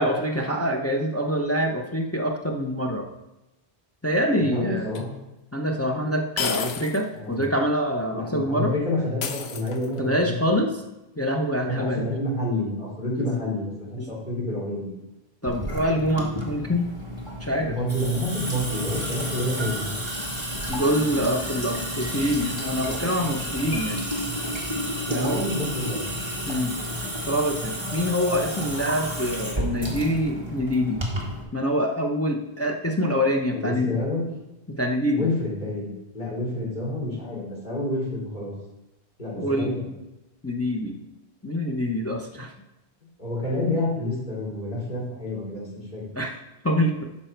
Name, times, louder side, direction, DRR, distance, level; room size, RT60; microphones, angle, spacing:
voice 1, 0.0-3.0 4.0-4.9 5.5-8.7 10.0-10.7 11.2-12.1 13.2-13.4 14.0-14.1 15.4-16.9 17.4-17.8 20.7-24.0 25.1-25.4 26.5-26.7 27.2-31.0 31.5-33.9 34.7-35.3 39.4-39.7 40.4-41.0 41.4-42.5 46.2-46.4 46.6-47.0, equal, 15° left, 1 dB, 0.7 m, -25 dB
voice 2, 4.4-5.1 7.1-7.4 8.1-10.3 11.7-14.9 17.6-20.1 25.1-26.1 33.5-34.2 35.1-38.5 39.2-39.8 43.2-46.0, left 1 dB, 45° left, -8 dB, 3.9 m, -29 dB
sound 1, 4.9-5.0 6.4-7.1 7.4-7.5 9.2-10.1, left 6 dB, 70° left, 1.0 m, -30 dB
Water tap faucet / Sink (filling or washing) / Drip, 15.5-31.4, equal, 25° right, 1.6 m, -31 dB
11.5 x 5.4 x 4.6 m, 0.96 s
omnidirectional pair, 1.1 m